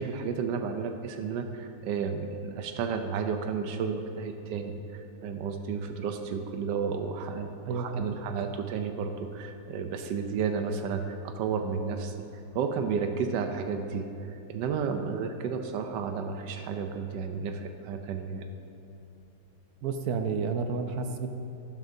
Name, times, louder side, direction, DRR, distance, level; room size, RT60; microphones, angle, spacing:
voice 1, 0.0-12.2 12.5-18.4, right 5 dB, 85° right, 6 dB, 1.3 m, -32 dB
voice 2, 7.7-8.2 19.8-21.3, right 5 dB, 70° right, 6 dB, 1.1 m, -31 dB
12.0 x 11.5 x 2.7 m, 2.9 s
omnidirectional pair, 1.9 m